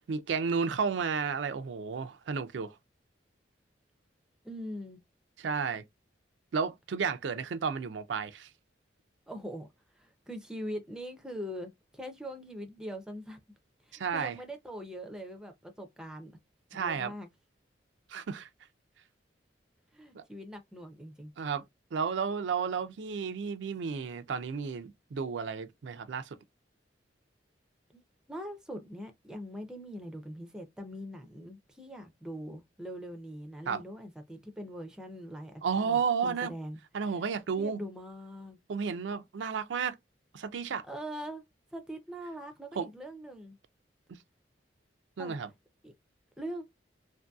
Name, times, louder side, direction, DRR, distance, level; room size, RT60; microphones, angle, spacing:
voice 1, 0.1-2.8 5.4-5.8 6.5-8.5 13.9-14.4 16.7-17.1 18.1-18.5 20.1-20.2 21.4-21.6 21.9-26.3 33.7-33.8 35.6-36.5 36.9-37.8 38.7-40.0 40.3-40.8 42.7-42.9 44.1-44.2 45.2-45.5, right 6 dB, 75° right, 0.4 m, -32 dB
voice 2, 4.4-5.0 9.3-9.7 10.0-13.4 13.8-16.3 16.7-17.3 19.9-21.3 28.3-37.2 37.6-38.6 40.9-41.4 41.7-43.6 45.2-45.5 45.8-45.9 46.4-46.6, equal, 5° right, 0.5 m, -42 dB
3.0 x 2.6 x 2.2 m
head